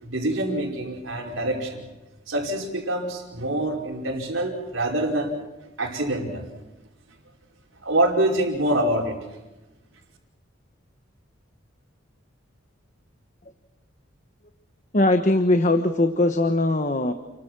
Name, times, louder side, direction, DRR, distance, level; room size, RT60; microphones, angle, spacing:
voice 1, 0.0-1.8 2.3-5.4 5.8-6.5 7.8-9.2, right 1 dB, 85° right, -1 dB, 5.0 m, -25 dB
voice 2, 14.9-17.1, left 2 dB, 40° left, 7 dB, 1.2 m, -20 dB
30.0 x 23.0 x 6.2 m, 1.1 s
head